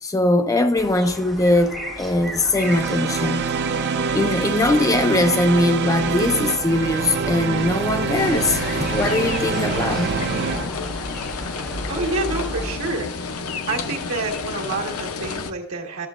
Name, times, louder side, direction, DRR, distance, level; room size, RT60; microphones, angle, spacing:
voice 1, 0.0-3.5 4.1-10.2, left 2 dB, 15° left, 0.4 m, -21 dB
sound 1, 0.7-12.7, equal, ahead, 1.7 m, -35 dB
sound 2, 2.6-10.7, right 5 dB, 55° right, 0.5 m, -25 dB
sound 3, 8.1-15.5, left 5 dB, 80° left, 0.5 m, -30 dB
voice 2, 11.9-13.4 13.7-16.1, right 3 dB, 75° right, 1.5 m, -28 dB
11.5 x 6.8 x 2.4 m
head